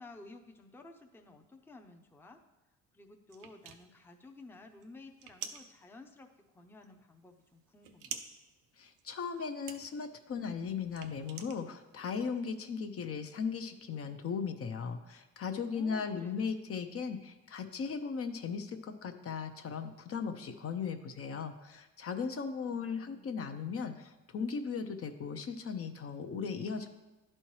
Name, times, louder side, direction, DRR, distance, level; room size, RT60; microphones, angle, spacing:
voice 1, 0.0-2.4 2.9-8.2 15.7-16.5 22.6-23.5, left 2 dB, 5° left, 3 dB, 0.6 m, -54 dB
sound 1, 3.3-12.2, right 8 dB, 90° right, 0.6 m, -49 dB
voice 2, 8.8-26.9, left 5 dB, 50° left, 7 dB, 0.6 m, -37 dB
11.0 x 4.4 x 3.1 m, 1.1 s
cardioid pair, 90°, 30 cm